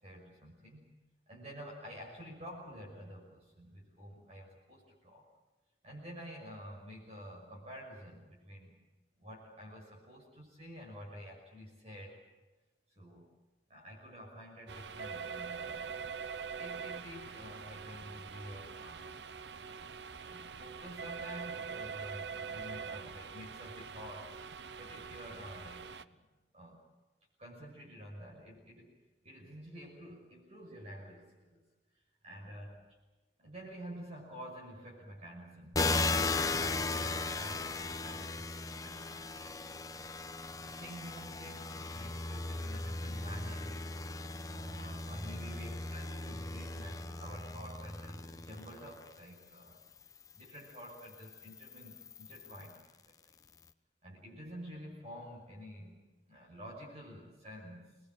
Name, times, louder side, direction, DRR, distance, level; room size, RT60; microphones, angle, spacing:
voice 1, 0.0-0.9 1.3-5.3 5.8-8.8 9.2-12.2 13.0-13.3 13.7-15.9 16.6-19.2 19.8-19.9 20.2-24.4 24.8-26.3 26.5-26.9 27.4-28.9 29.2-31.6 32.2-32.8 33.4-35.9 36.3-39.3 40.6-43.8 44.5-49.8 50.3-53.1 54.0-57.9, equal, 35° right, -2 dB, 6.1 m, -49 dB
sound 1, 14.7-26.0, right 6 dB, 85° right, 0.9 m, -44 dB
sound 2, 35.7-49.1 49.8-52.8, left 3 dB, 20° left, 0.9 m, -37 dB
26.5 x 21.5 x 7.6 m, 1.1 s
head